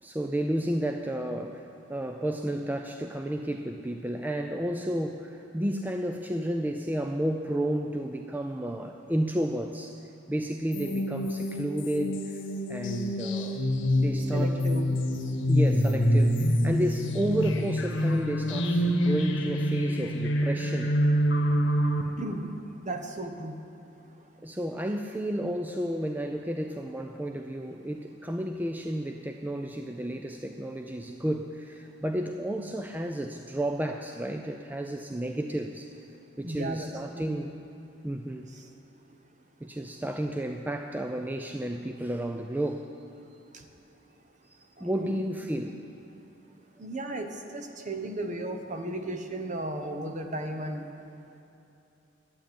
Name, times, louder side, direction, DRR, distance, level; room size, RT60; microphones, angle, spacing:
voice 1, 0.0-10.0 10.3-13.6 14.0-14.6 15.5-21.0 24.4-35.9 36.4-37.6 38.0-38.5 39.6-42.9 44.5-45.9, right 1 dB, 10° right, 4 dB, 0.4 m, -32 dB
sound 1, 10.7-22.0, equal, 80° left, 1.4 m, -26 dB
voice 2, 14.3-14.9 22.2-22.5 22.8-23.5 36.4-36.9 37.1-37.4 38.5-38.7 43.5-43.6 44.8-45.2 46.8-50.9, right 1 dB, 40° right, 5 dB, 1.0 m, -35 dB
11.5 x 8.8 x 10.0 m, 2.8 s
head